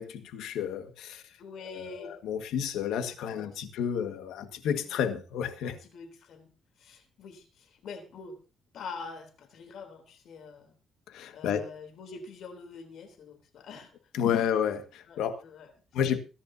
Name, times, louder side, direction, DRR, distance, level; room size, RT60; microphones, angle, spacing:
voice 1, 0.0-1.2 1.6-5.8 11.1-11.7 14.1-15.4 15.9-16.2, left 8 dB, 85° left, 9 dB, 1.7 m, -31 dB
voice 2, 1.4-2.2 3.2-3.7 4.8-5.0 5.6-6.5 6.8-8.4 8.7-10.8 11.3-13.9 14.3-14.5 15.1-15.7, left 4 dB, 70° left, 7 dB, 3.4 m, -45 dB
22.5 x 10.5 x 2.8 m, 0.31 s
cardioid pair, 90°, 0 cm